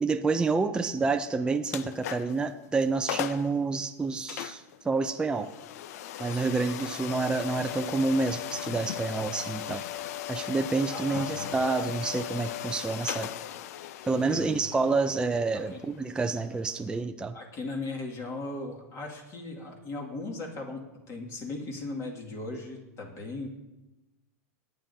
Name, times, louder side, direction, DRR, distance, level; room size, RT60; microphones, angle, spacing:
voice 1, 0.0-5.5 6.2-9.8 10.3-13.3 14.1-17.3, right 3 dB, 10° right, 6 dB, 0.5 m, -28 dB
sound 1, 1.7-2.4 2.8-2.9 3.1-3.5 4.3-17.0, left 12 dB, 70° left, 0.6 m, -38 dB
voice 2, 10.9-11.5 14.2-14.7 15.5-15.8 17.3-20.8 21.1-23.5, left 2 dB, 35° left, 0 dB, 2.3 m, -38 dB
18.5 x 9.2 x 2.8 m, 1.0 s
hypercardioid pair, 120°, 9 cm